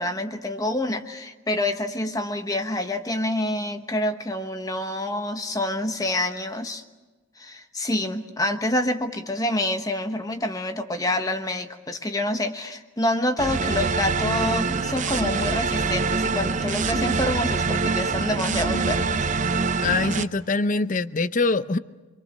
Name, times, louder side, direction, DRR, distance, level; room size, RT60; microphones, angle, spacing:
voice 1, 0.0-6.8 7.4-19.3, left 1 dB, 20° left, 1.1 m, -27 dB
sound 1, 13.4-20.2, right 4 dB, 40° right, 0.7 m, -25 dB
voice 2, 19.8-21.8, left 3 dB, 40° left, 0.7 m, -23 dB
27.5 x 23.0 x 6.7 m
head